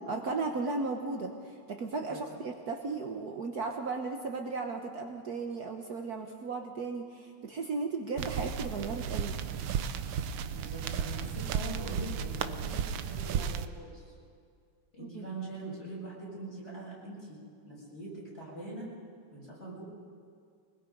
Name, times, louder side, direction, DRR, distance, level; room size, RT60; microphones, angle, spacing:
voice 1, 0.1-9.3 15.0-15.3, right 3 dB, 55° right, 3 dB, 1.5 m, -35 dB
sound 1, 8.2-13.7, right 8 dB, 85° right, 1.6 m, -34 dB
voice 2, 10.5-14.0 14.9-18.9 19.3-19.8, right 1 dB, 35° left, -6 dB, 7.7 m, -43 dB
23.5 x 21.0 x 5.3 m, 2.2 s
omnidirectional pair, 2.1 m